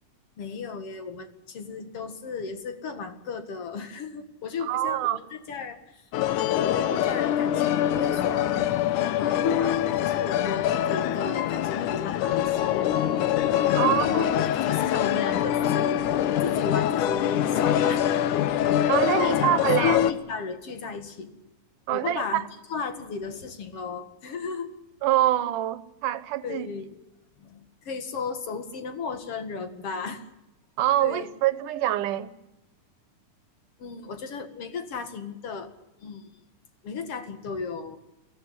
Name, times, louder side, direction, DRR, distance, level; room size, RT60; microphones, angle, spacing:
voice 1, 0.4-6.5 6.7-8.7 9.1-12.9 13.8-16.1 16.4-18.4 19.1-19.5 19.8-21.3 21.9-22.4 22.7-24.7 26.4-26.9 27.4-30.2 31.0-31.3 33.8-35.7 36.0-36.3 36.8-38.0, left 5 dB, 50° left, 2.8 m, -35 dB
voice 2, 4.7-5.2 13.7-14.3 18.9-20.0 21.9-22.5 25.0-26.7 30.8-32.3, right 13 dB, 90° right, 2.6 m, -25 dB
sound 1, 6.1-20.1, left 11 dB, 85° left, 2.5 m, -24 dB
23.0 x 16.5 x 9.6 m
omnidirectional pair, 3.6 m